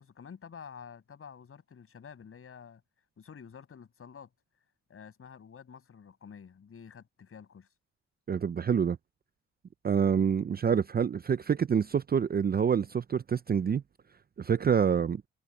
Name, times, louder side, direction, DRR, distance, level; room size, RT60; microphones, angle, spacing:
voice 1, 0.0-2.8 3.2-4.3 4.9-7.7, left 7 dB, 45° left, 7.8 m, -49 dB
voice 2, 8.3-9.0 9.8-13.8 14.4-15.2, right 7 dB, 30° right, 0.6 m, -27 dB
cardioid pair, 90°, 30 cm